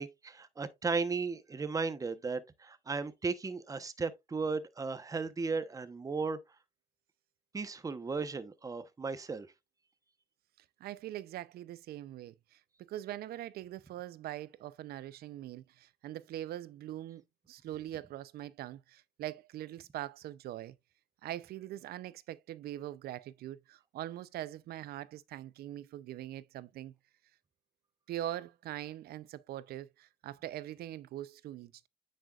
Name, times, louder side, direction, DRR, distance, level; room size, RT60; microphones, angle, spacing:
voice 1, 0.0-6.4 7.5-9.5, right 4 dB, 20° right, 1.0 m, -35 dB
voice 2, 10.8-17.2 17.5-20.8 21.2-26.9 28.1-31.9, right 13 dB, 65° right, 0.6 m, -42 dB
9.1 x 6.5 x 2.4 m
cardioid pair, 110°, 17 cm